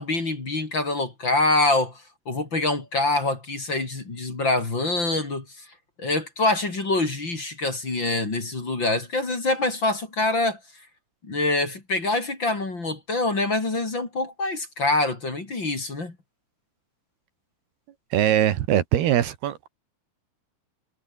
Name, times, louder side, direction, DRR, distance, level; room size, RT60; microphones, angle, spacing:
voice 1, 0.0-5.7 6.0-10.6 11.2-16.2, left 2 dB, 30° left, 4.2 m, -25 dB
voice 2, 18.1-19.7, right 11 dB, 70° right, 3.4 m, -21 dB
omnidirectional pair, 4.9 m